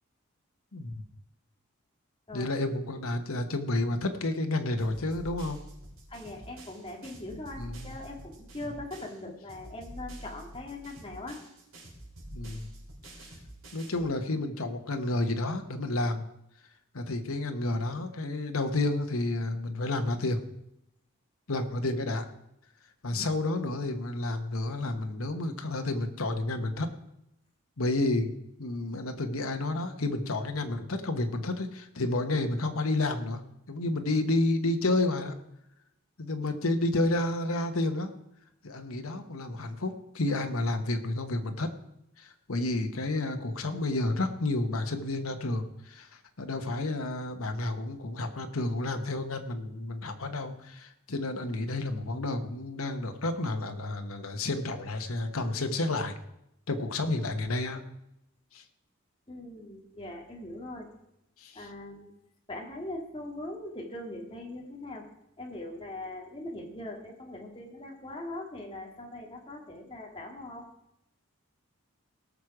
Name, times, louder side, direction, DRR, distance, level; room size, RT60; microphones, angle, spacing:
voice 1, 0.7-1.0 2.3-5.6 7.6-7.9 12.3-12.7 13.2-13.3 13.7-16.3 16.9-20.4 21.5-22.2 23.0-26.9 27.8-28.3 28.6-33.4 33.7-35.3 36.2-38.1 38.6-41.7 42.2-46.1 46.4-56.2 56.7-57.8 58.5-58.6 61.4-61.7, left 2 dB, 80° left, 6 dB, 1.2 m, -30 dB
sound 1, 4.8-9.2 9.5-14.1, right 1 dB, 75° right, 3.9 m, -47 dB
voice 2, 6.1-11.4 59.3-60.9 61.5-62.1 62.5-65.0 65.4-70.6, left 1 dB, 25° left, 1 dB, 1.9 m, -41 dB
18.0 x 6.4 x 4.9 m, 0.82 s
head